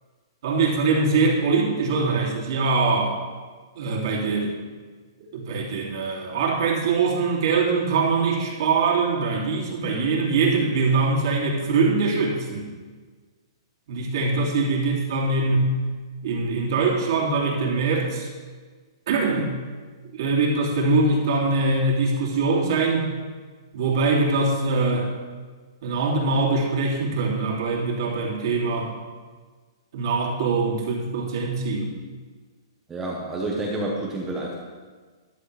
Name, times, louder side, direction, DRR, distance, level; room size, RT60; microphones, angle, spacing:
voice 1, 0.4-3.2 3.7-4.5 5.3-12.7 13.9-15.8 16.2-18.3 19.1-19.5 20.1-23.1 23.7-25.1 25.8-28.9 29.9-31.9, right 3 dB, 55° right, -2 dB, 2.8 m, -23 dB
voice 2, 32.9-34.6, right 2 dB, 10° right, -3 dB, 1.2 m, -29 dB
14.0 x 10.5 x 3.4 m, 1.5 s
hypercardioid pair, 160°, 3 cm